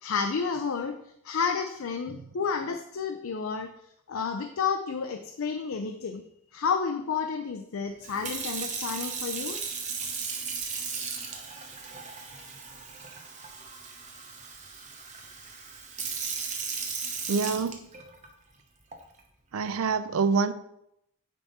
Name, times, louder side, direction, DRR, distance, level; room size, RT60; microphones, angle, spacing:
voice 1, 0.0-1.0 1.2-3.7 4.1-6.2 6.5-9.6, left 5 dB, 70° left, 6 dB, 0.5 m, -30 dB
Sink (filling or washing) / Fill (with liquid), 8.0-18.3 18.9-19.2, right 5 dB, 35° right, 0.9 m, -36 dB
voice 2, 17.3-17.9 19.5-20.5, right 5 dB, 85° right, 13 dB, 0.5 m, -26 dB
9.3 x 3.6 x 4.1 m, 0.77 s
head